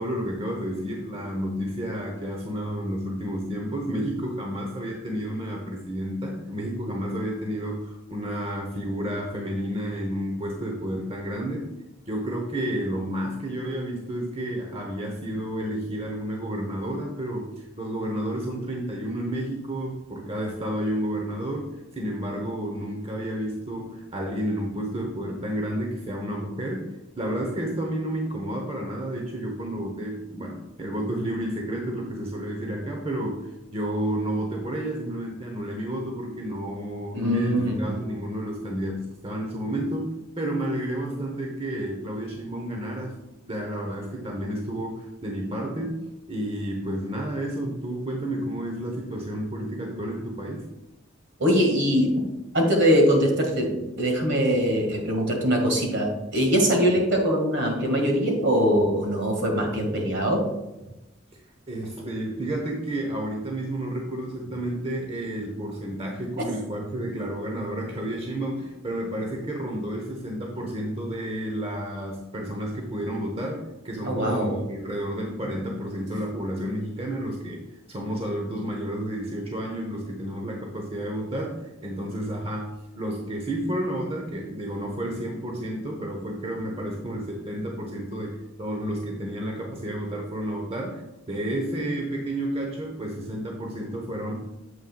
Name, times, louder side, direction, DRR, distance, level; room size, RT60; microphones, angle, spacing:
voice 1, 0.0-11.7 12.1-43.2 43.5-50.7 61.7-94.6, right 1 dB, 30° right, 0 dB, 0.9 m, -31 dB
voice 2, 37.1-37.9 51.4-52.2 52.5-60.4 74.0-74.6, equal, 60° right, 1 dB, 1.9 m, -22 dB
8.8 x 7.7 x 2.3 m, 0.98 s
head